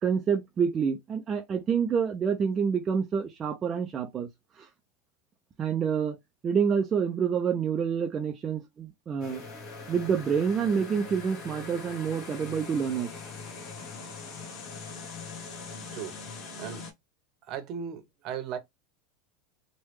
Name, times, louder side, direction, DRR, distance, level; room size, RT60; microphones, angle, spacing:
voice 1, 0.0-4.3 4.6-4.7 5.6-6.2 6.4-9.4 9.9-13.1, right 6 dB, 25° right, 0.4 m, -27 dB
sound 1, 9.2-16.9, left 4 dB, 40° left, 1.0 m, -42 dB
voice 2, 15.9-16.2 16.6-16.8 17.4-18.6, right 8 dB, 40° right, 0.8 m, -37 dB
3.1 x 2.2 x 3.2 m
supercardioid pair, 140°, 0 cm